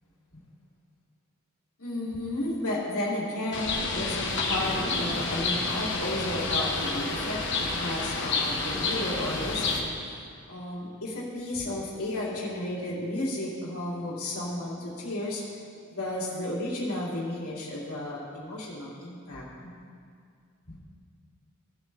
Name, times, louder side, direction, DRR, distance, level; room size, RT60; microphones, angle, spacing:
voice 1, 1.8-7.4 7.7-10.2 10.5-15.4 15.9-19.8 20.7-20.8, left 1 dB, 85° left, -5 dB, 2.5 m, -33 dB
Bird, 3.5-9.8, left 3 dB, 55° left, 1.2 m, -29 dB
17.0 x 7.3 x 3.3 m, 2.3 s
head